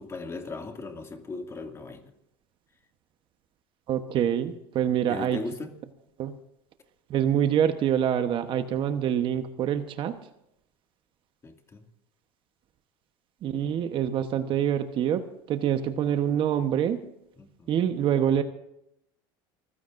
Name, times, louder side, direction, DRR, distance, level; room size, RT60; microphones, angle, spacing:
voice 1, 0.0-2.1 5.1-5.8 11.4-11.9 14.5-14.6 17.4-17.8, left 3 dB, 25° left, 4 dB, 2.4 m, -38 dB
voice 2, 3.9-5.4 6.2-6.3 7.1-10.2 13.4-17.0 17.7-18.4, right 9 dB, 45° right, 9 dB, 1.1 m, -26 dB
26.0 x 15.5 x 2.6 m, 0.81 s
supercardioid pair, 115°, 12 cm